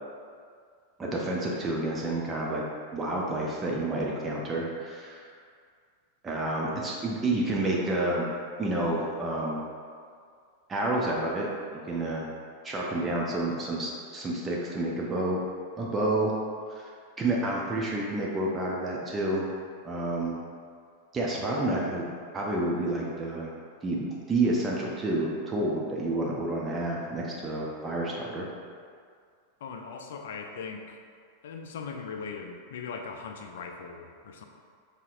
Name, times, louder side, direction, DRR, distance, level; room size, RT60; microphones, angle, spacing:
voice 1, 1.0-2.6 2.9-5.3 6.2-8.2 8.6-9.6 10.7-11.5 11.8-12.3 12.6-15.4 15.8-16.3 16.7-16.8 17.2-19.5 19.8-20.4 21.1-22.1 22.3-23.5 23.8-28.5, right 2 dB, 20° right, -3 dB, 0.6 m, -29 dB
voice 2, 29.6-31.0 31.4-34.4, left 5 dB, 60° left, 4 dB, 0.4 m, -39 dB
5.6 x 3.6 x 2.5 m, 2.1 s
figure-of-eight pair, 90°, 0 cm